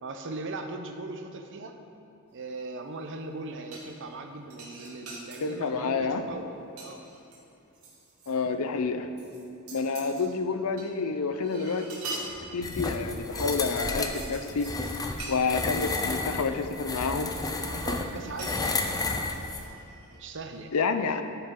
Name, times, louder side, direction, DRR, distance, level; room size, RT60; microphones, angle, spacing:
voice 1, 0.0-1.8 2.3-6.5 6.8-7.0 10.0-10.2 17.7-19.7 20.1-20.7, right 2 dB, 60° right, 6 dB, 0.7 m, -39 dB
sound 1, 3.7-4.2 4.5-5.4 5.9-6.2 6.5-8.3 8.7-8.8 9.2-10.9 11.1-12.9 13.4-14.8 15.2-15.4 15.9-16.0 16.5-17.2 18.4-20.2 20.5-20.7, right 2 dB, 80° right, 1.8 m, -43 dB
voice 2, 5.4-6.2 8.3-9.1 9.7-11.9 12.5-14.7 15.3-17.3 20.7-21.2, left 4 dB, 75° left, 8 dB, 0.6 m, -29 dB
sound 2, 12.6-19.6, left 3 dB, 15° left, 0.5 m, -32 dB
13.5 x 5.7 x 3.8 m, 2.7 s
head